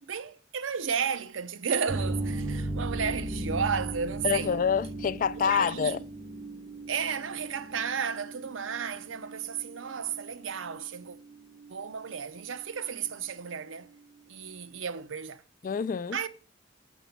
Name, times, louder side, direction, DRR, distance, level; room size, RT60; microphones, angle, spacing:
voice 1, 0.0-4.6 5.4-6.0 6.9-11.2 11.7-13.9 14.3-15.4 16.1-16.3, right 6 dB, 85° right, 0.6 m, -33 dB
sound 1, 1.9-13.2 13.6-13.7 13.9-14.0 14.5-14.6, right 2 dB, 20° right, 0.6 m, -37 dB
voice 2, 4.2-6.0 15.6-16.2, left 7 dB, 45° left, 0.3 m, -27 dB
8.1 x 6.0 x 5.7 m
head